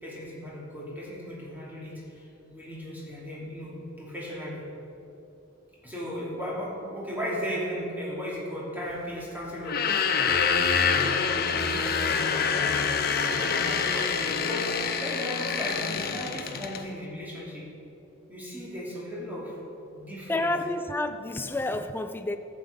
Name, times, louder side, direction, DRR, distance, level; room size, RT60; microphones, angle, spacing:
voice 1, 0.0-4.6 5.8-9.8 10.3-17.6 18.3-19.6 19.9-20.5, equal, 10° right, -6 dB, 2.7 m, -36 dB
sound 1, 9.6-16.8, left 6 dB, 50° left, 0.7 m, -26 dB
voice 2, 20.3-22.4, left 2 dB, 10° left, 8 dB, 0.4 m, -29 dB
13.0 x 7.5 x 5.1 m, 2.8 s
head